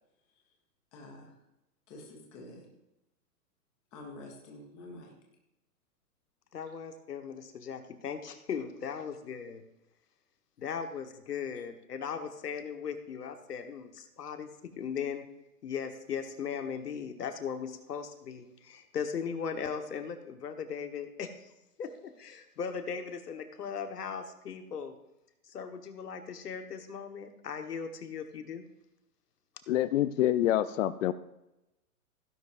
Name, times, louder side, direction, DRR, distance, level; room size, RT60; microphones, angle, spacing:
voice 1, 0.9-1.3 1.9-2.7 3.9-5.1, left 2 dB, 5° left, 0 dB, 0.3 m, -48 dB
voice 2, 6.5-9.6 10.6-15.3 15.6-21.5 21.8-25.0 25.5-28.6, left 6 dB, 85° left, 6 dB, 1.6 m, -38 dB
voice 3, 29.7-31.1, left 13 dB, 55° left, 13 dB, 0.6 m, -26 dB
16.5 x 10.5 x 2.6 m, 0.92 s
hypercardioid pair, 130°, 46 cm